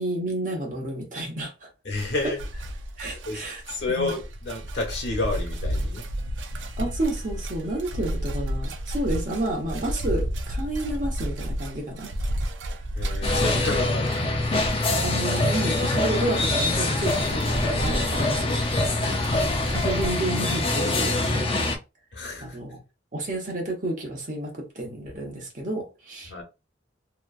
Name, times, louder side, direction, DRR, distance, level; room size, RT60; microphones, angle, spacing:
voice 1, 0.0-1.7 3.0-3.6 3.9-4.1 6.8-12.1 13.8-13.9 15.0-18.6 19.0-19.3 19.7-21.5 22.4-22.8 23.1-26.3, right 1 dB, 45° right, 0.9 m, -31 dB
voice 2, 1.8-2.4 3.3-3.4 3.7-6.0 12.9-14.4 22.1-22.6 26.3-26.4, left 2 dB, 70° left, 1.1 m, -30 dB
sound 1, 1.9-20.1, equal, 90° right, 0.5 m, -32 dB
sound 2, 13.2-21.8, left 2 dB, 30° left, 0.4 m, -24 dB
2.9 x 2.3 x 2.4 m
head